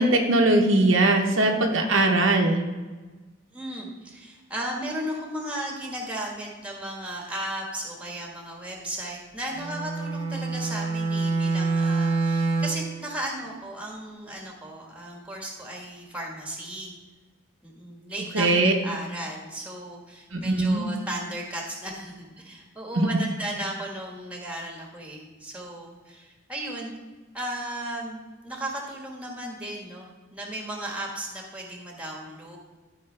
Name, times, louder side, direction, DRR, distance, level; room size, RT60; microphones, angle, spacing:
voice 1, 0.0-2.6 18.3-18.7 20.3-20.8 23.0-23.1, right 2 dB, 70° right, 2 dB, 1.0 m, -20 dB
voice 2, 3.5-16.9 17.6-26.9 27.3-32.6, right 1 dB, 5° right, 0 dB, 1.5 m, -35 dB
Bowed string instrument, 9.5-12.9, right 3 dB, 30° right, 1.3 m, -26 dB
13.5 x 5.1 x 3.3 m, 1.3 s
head